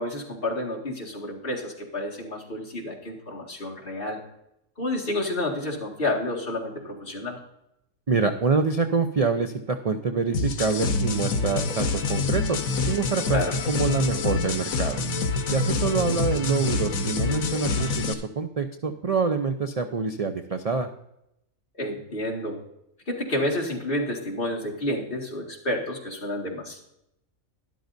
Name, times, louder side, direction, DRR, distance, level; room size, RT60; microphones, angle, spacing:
voice 1, 0.0-4.2 4.8-7.4 13.3-13.5 21.8-22.6 23.1-26.8, left 1 dB, 40° left, -2 dB, 2.2 m, -30 dB
voice 2, 8.1-13.4 13.7-15.0 15.5-20.9, right 4 dB, 45° right, 6 dB, 0.5 m, -26 dB
sound 1, 10.3-18.1, left 4 dB, 80° left, 1.4 m, -26 dB
12.5 x 11.5 x 2.6 m, 0.81 s
omnidirectional pair, 1.4 m